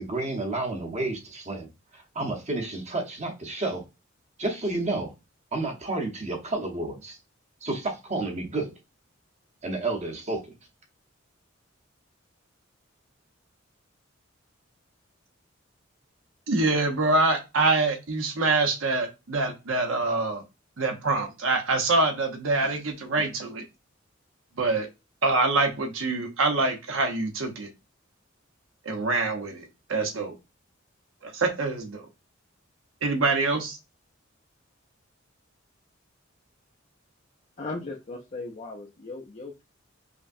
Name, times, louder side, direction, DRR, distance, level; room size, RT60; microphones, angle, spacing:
voice 1, 0.0-3.8 4.4-5.1 5.5-7.2 7.6-8.7 9.6-10.5, right 2 dB, 35° right, 2 dB, 1.0 m, -31 dB
voice 2, 16.5-20.4 20.8-23.6 24.6-24.9 25.2-27.7 28.8-30.3 31.2-32.1 33.0-33.8, right 3 dB, 80° right, 4 dB, 0.9 m, -25 dB
voice 3, 37.6-39.6, left 3 dB, 35° left, -1 dB, 0.5 m, -37 dB
5.0 x 2.2 x 2.6 m, 0.25 s
head